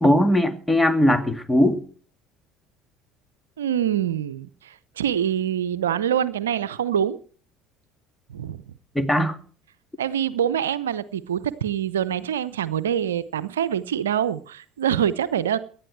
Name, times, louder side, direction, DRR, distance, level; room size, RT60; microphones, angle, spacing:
voice 1, 0.0-1.8 9.0-9.4, left 1 dB, 5° left, 9 dB, 2.1 m, -19 dB
voice 2, 3.6-7.2 8.3-8.6 10.0-15.6, right 9 dB, 80° right, 15 dB, 0.7 m, -25 dB
17.5 x 11.5 x 4.6 m, 0.43 s
hypercardioid pair, 65°, 0 cm